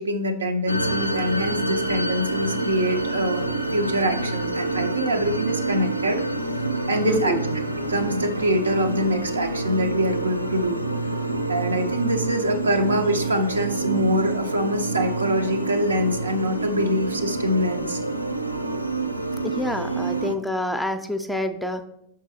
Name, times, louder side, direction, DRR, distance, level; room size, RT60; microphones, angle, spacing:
voice 1, 0.0-6.2 6.9-7.3 7.8-10.8 11.5-18.0, equal, 75° right, 5 dB, 0.6 m, -24 dB
sound 1, 0.7-20.3, right 2 dB, 90° left, 0.4 m, -27 dB
voice 2, 7.0-7.6 19.4-21.8, left 1 dB, ahead, 7 dB, 0.5 m, -27 dB
6.1 x 3.7 x 4.1 m, 0.75 s
figure-of-eight pair, 90°, 0 cm